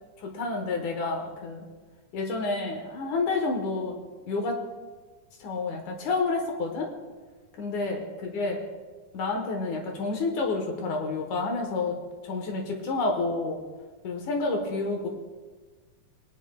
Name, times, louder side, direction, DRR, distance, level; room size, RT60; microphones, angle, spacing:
voice 1, 0.2-1.7 2.1-4.0 4.3-4.6 5.4-6.9 7.6-8.6 9.1-12.0 12.2-13.6 14.0-15.1, left 3 dB, 75° left, 3 dB, 2.5 m, -29 dB
23.0 x 9.9 x 2.3 m, 1.4 s
omnidirectional pair, 3.6 m